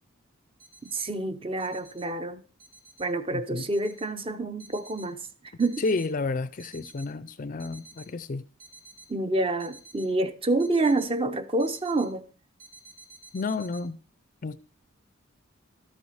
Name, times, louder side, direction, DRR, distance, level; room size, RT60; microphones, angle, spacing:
sound 1, 0.6-1.1 1.6-2.0 2.6-3.0 3.6-4.1 4.6-5.1 5.6-6.1 6.6-7.1 7.6-8.1 8.6-9.1 9.6-10.1 10.6-11.1 11.6-12.1 12.6-13.8, right 3 dB, 65° right, 3.3 m, -50 dB
voice 1, 0.8-2.4 3.0-5.2 5.6-5.8 9.1-12.3, right 2 dB, 25° right, 0.7 m, -27 dB
voice 2, 3.3-3.7 5.8-8.5 13.3-14.0 14.4-14.6, left 3 dB, 40° left, 0.4 m, -31 dB
12.5 x 7.0 x 4.9 m
head